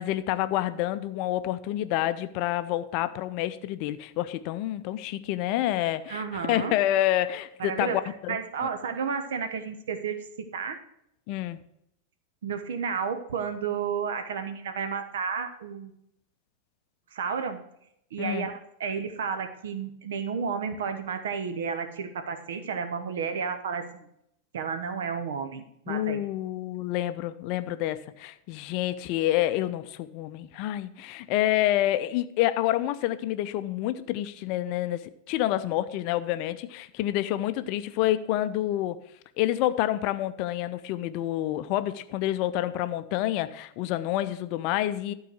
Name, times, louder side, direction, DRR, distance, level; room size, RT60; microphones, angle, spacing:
voice 1, 0.0-8.4 11.3-11.6 18.2-18.5 25.9-39.0 39.4-45.1, left 14 dB, 45° left, 12 dB, 0.5 m, -28 dB
voice 2, 6.1-6.7 7.6-8.0 8.3-10.8 12.4-15.9 17.1-17.6 18.1-24.1 24.5-26.2, right 6 dB, 60° right, 9 dB, 1.1 m, -32 dB
12.0 x 4.7 x 6.3 m, 0.75 s
figure-of-eight pair, 90°, 0 cm